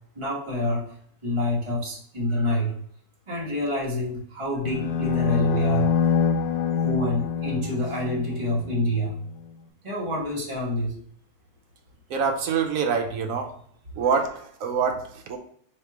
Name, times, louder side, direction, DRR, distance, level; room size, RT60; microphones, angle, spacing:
voice 1, 0.1-0.9 1.2-2.7 3.3-5.9 6.8-9.1 9.8-10.9, left 1 dB, 20° right, -4 dB, 1.1 m, -27 dB
sound 1, 4.6-8.9, left 7 dB, 75° left, 1.1 m, -25 dB
voice 2, 12.1-13.5 14.0-15.4, right 6 dB, 70° right, 4 dB, 1.0 m, -25 dB
3.1 x 2.9 x 4.5 m, 0.63 s
omnidirectional pair, 1.6 m